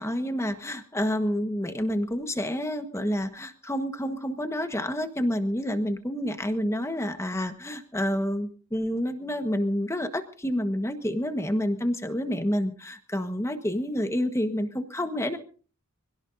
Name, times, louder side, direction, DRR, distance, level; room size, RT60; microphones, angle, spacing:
voice 1, 0.0-15.4, equal, 10° left, 8 dB, 1.3 m, -28 dB
25.5 x 17.0 x 2.7 m, 0.39 s
head